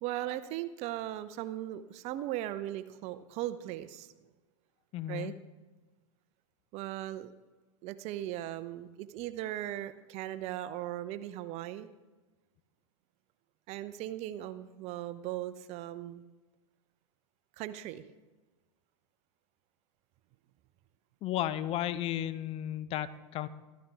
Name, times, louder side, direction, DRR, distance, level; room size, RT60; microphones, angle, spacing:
voice 1, 0.0-4.1 5.1-5.3 6.7-7.3 7.8-11.9 13.7-16.2 17.6-18.0, right 13 dB, 45° right, 13 dB, 0.7 m, -38 dB
voice 2, 4.9-5.3 21.2-23.5, left 12 dB, 40° left, 14 dB, 0.8 m, -34 dB
13.5 x 13.0 x 3.5 m, 1.2 s
hypercardioid pair, 95°, 16 cm